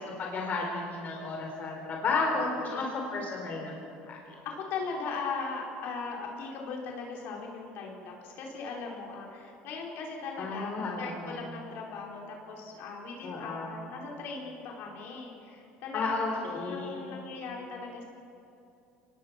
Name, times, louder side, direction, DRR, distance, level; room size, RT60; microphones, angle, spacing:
voice 1, 0.0-3.7 4.1-4.2 10.4-11.5 13.2-13.9 15.9-17.2, left 3 dB, 45° left, 0 dB, 4.0 m, -33 dB
voice 2, 2.6-3.0 4.4-10.7 11.0-18.0, left 4 dB, 65° left, -1 dB, 4.9 m, -39 dB
24.0 x 20.0 x 6.1 m, 2.7 s
supercardioid pair, 105°, 4 cm